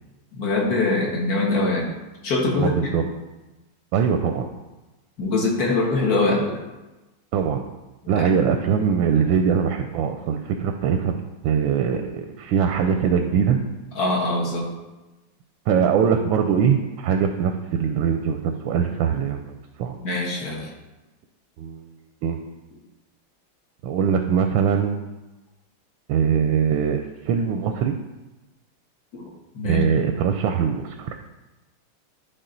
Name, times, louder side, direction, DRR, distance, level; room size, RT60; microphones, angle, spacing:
voice 1, 0.3-1.9 2.2-3.1 5.2-6.6 8.2-8.3 14.0-14.7 20.0-20.7 29.1-29.3 29.5-29.8, left 2 dB, 45° left, -2 dB, 1.8 m, -23 dB
voice 2, 2.6-3.0 3.9-4.5 7.3-7.6 8.1-13.6 15.7-19.9 21.6-21.9 22.2-22.4 23.8-25.0 26.1-27.9 29.6-31.1, right 7 dB, 75° right, 6 dB, 1.2 m, -22 dB
11.0 x 4.1 x 3.9 m, 1.1 s
omnidirectional pair, 2.4 m